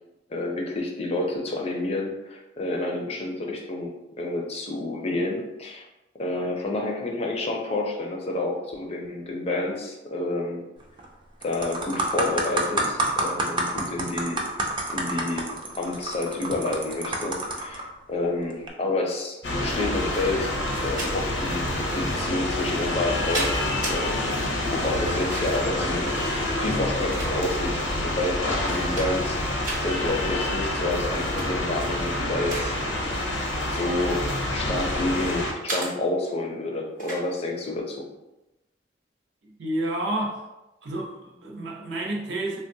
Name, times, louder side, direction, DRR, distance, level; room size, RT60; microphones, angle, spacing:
voice 1, 0.3-5.9 6.2-10.6 11.4-14.6 14.9-15.5 15.8-20.5 20.8-21.7 21.9-23.6 23.9-24.3 24.7-29.4 29.8-38.1, left 2 dB, 35° left, 0 dB, 0.4 m, -29 dB
sound 1, 10.8-11.1 11.4-17.8 18.5-18.7, right 1 dB, 25° right, 0.4 m, -28 dB
sound 2, 19.4-35.5, left 1 dB, 75° left, 0.6 m, -27 dB
sound 3, 20.7-21.1 22.0-22.2 22.9-24.0 25.0-25.7 26.6-27.7 28.3-28.4 28.7-29.3 29.6-29.8 31.2-31.5 31.9-32.7 33.0-33.3 34.0-35.1 35.7-35.9 37.0-37.2, right 2 dB, 50° right, 0.9 m, -34 dB
voice 2, 39.6-40.4 40.8-42.6, right 1 dB, 75° right, 0 dB, 0.6 m, -30 dB
3.3 x 2.2 x 2.6 m, 0.97 s
head